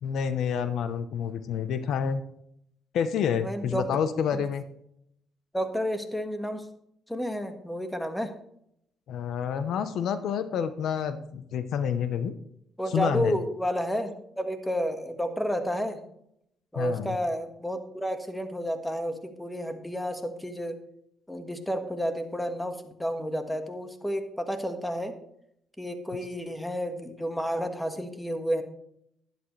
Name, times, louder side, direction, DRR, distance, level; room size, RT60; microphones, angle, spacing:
voice 1, 0.0-2.2 2.9-4.6 9.1-12.3 12.9-13.4 16.7-17.2, left 7 dB, 75° left, 11 dB, 0.9 m, -28 dB
voice 2, 3.4-3.8 4.3-4.4 5.5-6.6 7.1-8.3 12.8-16.0 16.7-20.8 21.3-25.1 25.8-28.6, equal, 5° left, 7 dB, 1.7 m, -31 dB
12.0 x 11.0 x 3.3 m, 0.74 s
cardioid pair, 90°, 0 cm